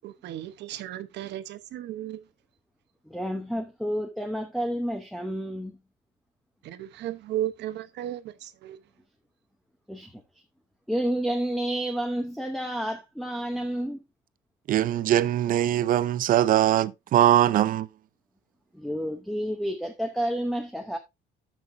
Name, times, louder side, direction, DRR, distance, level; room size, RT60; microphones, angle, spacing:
voice 1, 0.0-2.2 6.6-8.8, right 12 dB, 65° right, 1.0 m, -35 dB
voice 2, 3.1-5.8 9.9-10.2 10.9-14.0 18.7-21.0, equal, ahead, 0.8 m, -30 dB
voice 3, 14.7-17.9, right 12 dB, 45° right, 0.5 m, -21 dB
13.5 x 5.8 x 2.6 m
cardioid pair, 160°, 19 cm